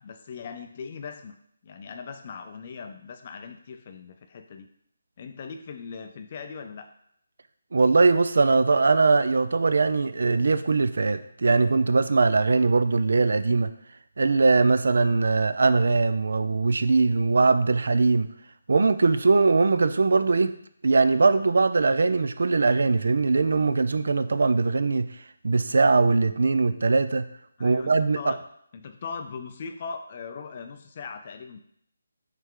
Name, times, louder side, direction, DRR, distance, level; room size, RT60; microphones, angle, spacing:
voice 1, 0.0-1.4 1.6-4.7 5.2-6.9 27.6-28.4 28.7-31.6, left 5 dB, 30° left, 0.4 m, -39 dB
voice 2, 7.7-13.7 14.2-18.3 18.7-20.5 20.8-25.1 25.4-27.3 27.6-28.3, right 3 dB, 65° right, 0.4 m, -21 dB
8.2 x 3.4 x 3.7 m
hypercardioid pair, 170°, 0 cm